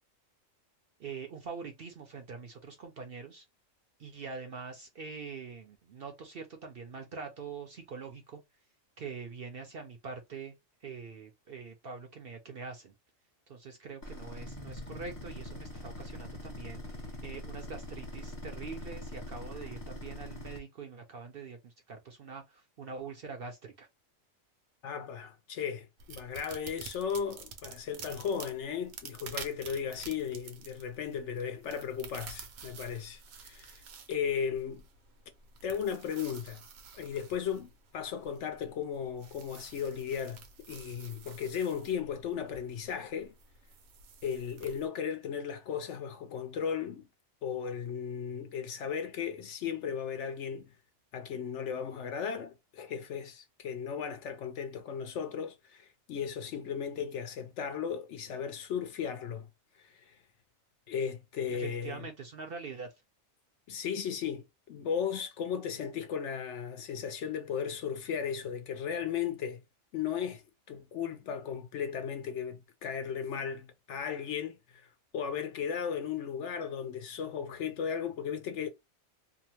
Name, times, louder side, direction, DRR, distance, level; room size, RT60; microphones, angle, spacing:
voice 1, 1.0-3.4 4.0-8.4 9.0-10.5 10.8-12.9 13.5-23.9 61.5-62.9, right 5 dB, 60° right, 0.7 m, -44 dB
sound 1, 14.0-20.6, left 1 dB, 25° left, 0.4 m, -43 dB
voice 2, 24.8-34.8 35.6-36.6 36.9-43.3 44.2-47.1 47.4-50.7 51.1-59.5 59.8-60.2 60.9-62.0 63.7-69.6 69.9-70.4 70.7-78.7, left 7 dB, 65° left, 0.8 m, -36 dB
sound 2, 26.0-44.9, right 6 dB, 75° right, 1.0 m, -50 dB
2.8 x 2.0 x 2.8 m
omnidirectional pair, 1.4 m